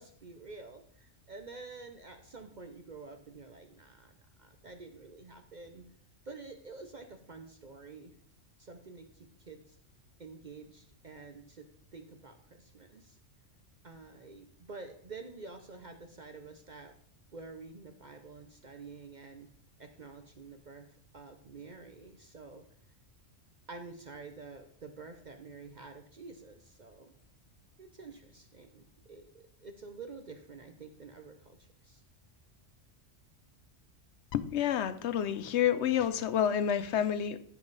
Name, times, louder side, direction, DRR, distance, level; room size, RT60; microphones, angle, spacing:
voice 1, 0.0-5.9 6.2-8.1 8.6-9.8 10.2-11.7 11.9-13.2 13.8-16.9 17.3-19.5 19.8-22.6 23.7-27.1 27.8-32.0, right 4 dB, 45° right, 6 dB, 0.7 m, -49 dB
voice 2, 34.3-37.4, left 9 dB, 65° left, 14 dB, 0.9 m, -29 dB
14.5 x 5.3 x 4.0 m, 0.62 s
omnidirectional pair, 1.3 m